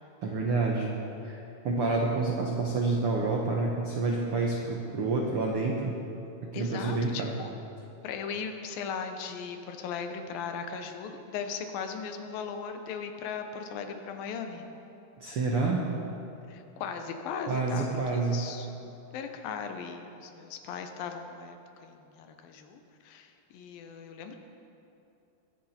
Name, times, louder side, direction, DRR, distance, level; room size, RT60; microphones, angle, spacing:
voice 1, 0.2-0.9 1.2-1.4 1.6-6.0 6.5-7.3 15.2-15.8 17.5-18.4, right 3 dB, 75° right, -1 dB, 1.3 m, -28 dB
voice 2, 6.5-7.5 8.0-14.7 16.5-17.9 18.3-24.4, left 6 dB, 75° left, 6 dB, 2.7 m, -38 dB
22.0 x 10.5 x 4.4 m, 2.9 s
omnidirectional pair, 4.3 m